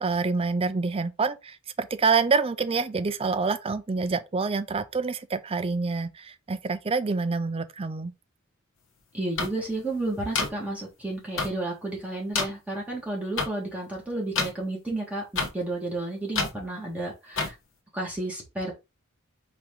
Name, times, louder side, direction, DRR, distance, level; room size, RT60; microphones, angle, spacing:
voice 1, 0.0-8.1, right 4 dB, 25° right, 0.4 m, -27 dB
voice 2, 9.1-17.5 17.9-18.8, right 2 dB, 5° right, 1.6 m, -32 dB
sound 1, 9.4-9.5 10.3-10.5 11.4-11.5 12.3-12.4 13.4-13.5 14.4-14.5 15.4-15.5 16.4-16.5 17.4-17.5, left 4 dB, 65° left, 1.2 m, -26 dB
4.9 x 3.0 x 3.6 m
head